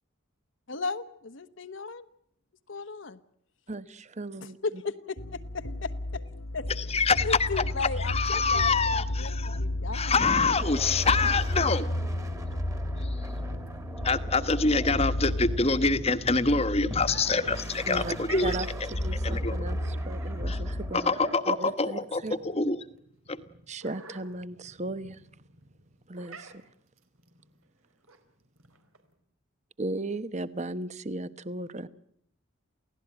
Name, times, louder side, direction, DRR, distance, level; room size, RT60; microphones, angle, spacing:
voice 1, 0.7-2.0 2.7-3.2 4.4-6.2 6.5-6.7 7.2-10.1 10.4-11.0, left 4 dB, 60° left, 1.1 m, -36 dB
voice 2, 3.7-4.6 17.9-18.1 18.4-21.1 21.5-22.3 23.7-25.2 26.1-26.6 29.8-31.9, right 2 dB, 35° right, 1.0 m, -36 dB
sound 1, 5.2-20.9, left 1 dB, 85° left, 2.4 m, -33 dB
voice 3, 6.8-9.6 9.9-11.9 13.0-13.3 14.0-18.5 18.8-18.9 19.2-19.6 20.4-20.6 20.9-22.8 23.3-23.4, left 4 dB, 30° left, 1.3 m, -26 dB
sound 2, 10.2-16.1 16.9-21.4, right 1 dB, 15° right, 2.0 m, -44 dB
sound 3, 13.2-29.1, right 4 dB, 85° right, 4.3 m, -51 dB
29.0 x 17.0 x 8.9 m
head